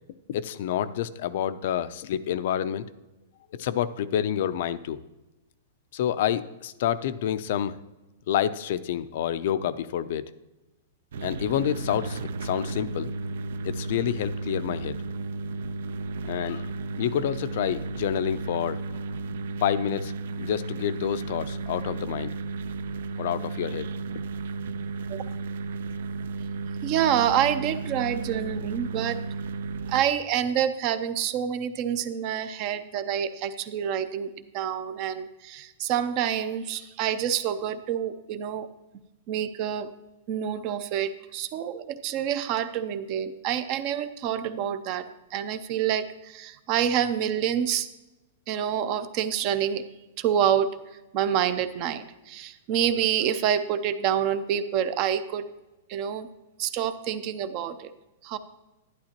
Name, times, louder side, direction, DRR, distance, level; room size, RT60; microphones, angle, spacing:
voice 1, 0.3-2.8 3.5-5.0 5.9-7.7 8.3-10.2 11.2-13.1 13.6-15.0 16.2-16.7 17.0-19.0 19.6-22.4 23.2-23.9, left 10 dB, 50° left, 14 dB, 0.4 m, -28 dB
sound 1, 11.1-30.0, right 3 dB, 70° right, 0.6 m, -34 dB
voice 2, 26.8-29.2 29.9-38.7 39.3-39.9 40.3-47.9 48.5-49.8 50.2-50.7 51.1-55.5 55.9-56.3 56.6-57.9 58.2-58.4, right 9 dB, 30° right, 12 dB, 0.5 m, -27 dB
11.5 x 11.0 x 2.9 m, 1.0 s
supercardioid pair, 175°, 0 cm